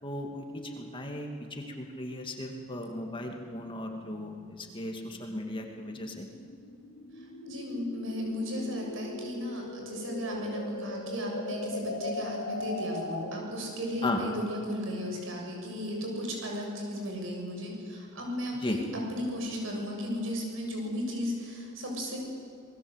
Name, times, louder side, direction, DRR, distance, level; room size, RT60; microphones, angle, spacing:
voice 1, 0.0-6.3 14.0-14.2 18.6-18.8, left 1 dB, 25° left, 3 dB, 2.4 m, -36 dB
sound 1, 2.3-13.6, left 2 dB, 60° left, 2.4 m, -40 dB
voice 2, 7.2-22.2, equal, 65° right, 0 dB, 7.1 m, -35 dB
28.0 x 20.5 x 8.2 m, 2.4 s
head